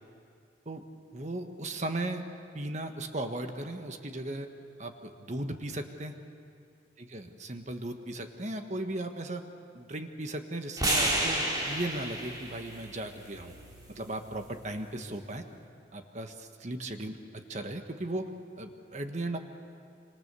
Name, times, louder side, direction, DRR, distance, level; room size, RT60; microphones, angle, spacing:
voice 1, 1.1-2.2 2.5-4.5 4.8-6.1 7.0-9.4 9.7-13.6 13.9-15.4 15.9-17.2 17.5-18.2 18.6-19.4, right 1 dB, 40° right, 6 dB, 1.4 m, -36 dB
sound 1, 10.8-15.0, right 1 dB, 20° right, 4.1 m, -32 dB
27.0 x 26.0 x 7.0 m, 2.4 s
head